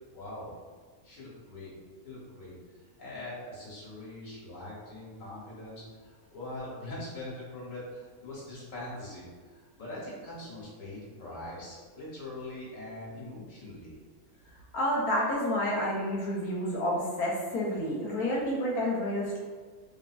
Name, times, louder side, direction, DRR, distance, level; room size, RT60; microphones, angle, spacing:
voice 1, 0.1-0.5 1.0-1.7 2.0-14.0, left 1 dB, 65° left, -6 dB, 1.4 m, -42 dB
voice 2, 14.7-19.4, equal, 85° left, -4 dB, 1.2 m, -29 dB
3.4 x 2.5 x 2.3 m, 1.5 s
omnidirectional pair, 1.5 m